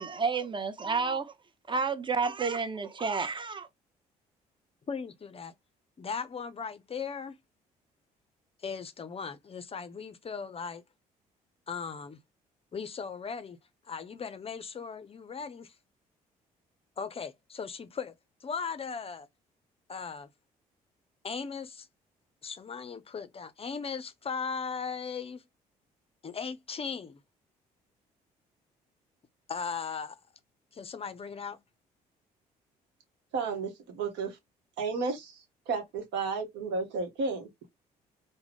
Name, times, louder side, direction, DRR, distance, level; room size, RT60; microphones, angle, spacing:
voice 1, 0.0-1.3 1.7-3.7, right 4 dB, 25° right, 0.7 m, -30 dB
voice 2, 4.9-5.5 6.0-7.4 8.6-10.8 11.7-12.2 12.7-13.6 13.8-15.8 17.0-18.1 18.4-19.3 19.9-20.3 21.2-21.9 22.4-25.4 26.2-27.2 29.5-30.2 30.7-31.6, left 5 dB, 30° left, 0.5 m, -38 dB
voice 3, 33.3-34.4 34.8-37.5, right 4 dB, 65° right, 1.0 m, -33 dB
3.4 x 2.1 x 3.4 m
hypercardioid pair, 50°, 19 cm